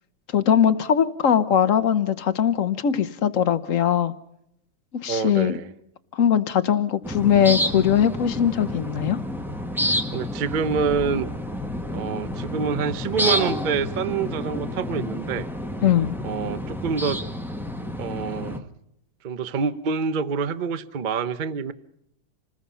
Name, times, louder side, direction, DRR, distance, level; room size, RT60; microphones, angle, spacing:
voice 1, 0.3-4.1 5.0-5.5 6.1-9.2 15.8-16.2, left 9 dB, 50° left, 1.1 m, -20 dB
voice 2, 5.1-5.7 9.8-11.3 11.9-15.5 16.2-17.2 18.0-18.7 19.2-21.7, right 6 dB, 45° right, 0.6 m, -27 dB
sound 1, 7.0-18.6, equal, ahead, 1.1 m, -29 dB
27.5 x 20.0 x 5.6 m
omnidirectional pair, 2.2 m